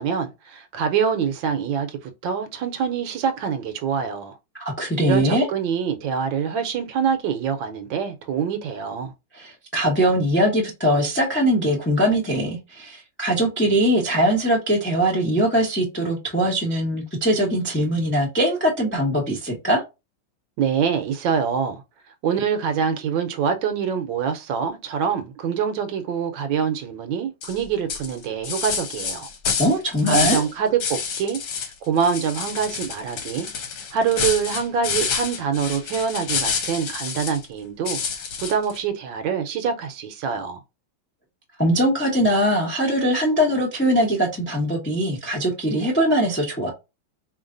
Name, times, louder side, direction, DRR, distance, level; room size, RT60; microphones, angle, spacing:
voice 1, 0.0-4.4 5.0-9.1 20.6-21.8 22.2-29.3 30.1-33.5 33.9-40.6, right 7 dB, 75° right, 1.3 m, -25 dB
voice 2, 4.6-5.5 9.3-19.8 29.6-30.4 41.6-46.7, equal, 15° left, 0.4 m, -21 dB
sound 1, 27.4-27.6 27.9-30.5 30.8-31.7 32.0-37.4 37.9-38.8, left 6 dB, 65° left, 1.3 m, -28 dB
4.3 x 3.2 x 2.5 m
omnidirectional pair, 2.2 m